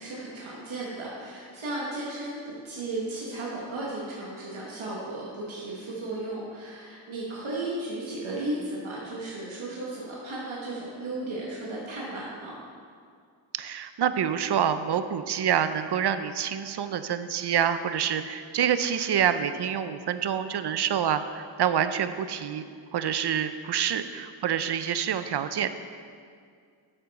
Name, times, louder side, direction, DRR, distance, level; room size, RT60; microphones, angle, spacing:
voice 1, 0.0-12.5, right 2 dB, 90° right, -5 dB, 1.4 m, -35 dB
voice 2, 13.6-22.6 22.9-25.8, right 8 dB, 60° right, 11 dB, 0.5 m, -27 dB
8.8 x 6.9 x 4.1 m, 2.2 s
wide cardioid pair, 70°, 46 cm